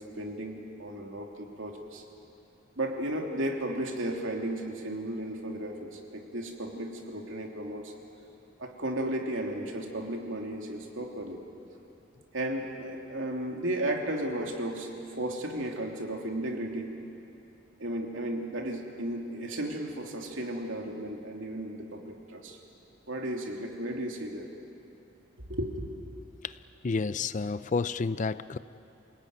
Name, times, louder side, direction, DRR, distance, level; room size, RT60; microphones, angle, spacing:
voice 1, 0.0-2.0 2.7-7.9 8.6-11.4 12.3-16.9 17.8-22.6 23.1-24.5 25.5-25.8, right 1 dB, 70° right, 1 dB, 3.1 m, -34 dB
voice 2, 26.8-28.6, left 4 dB, 40° left, 15 dB, 0.5 m, -30 dB
27.5 x 18.5 x 9.6 m, 2.7 s
head